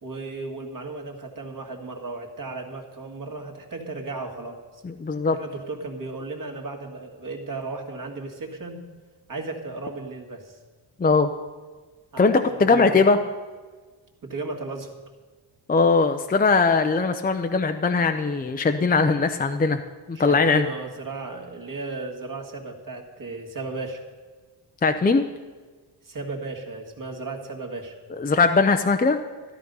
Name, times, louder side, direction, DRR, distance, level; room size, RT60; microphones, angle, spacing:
voice 1, 0.0-4.8 5.3-8.8 9.3-10.6 12.1-13.0 14.2-15.0 20.1-24.0 26.0-27.9, right 3 dB, 45° right, 2 dB, 2.0 m, -35 dB
voice 2, 4.8-5.4 11.0-11.3 12.2-13.2 15.7-19.8 20.1-20.6 24.8-25.2 28.2-29.2, left 4 dB, 20° left, 6 dB, 0.6 m, -20 dB
13.0 x 12.5 x 5.4 m, 1.4 s
wide cardioid pair, 120°, 43 cm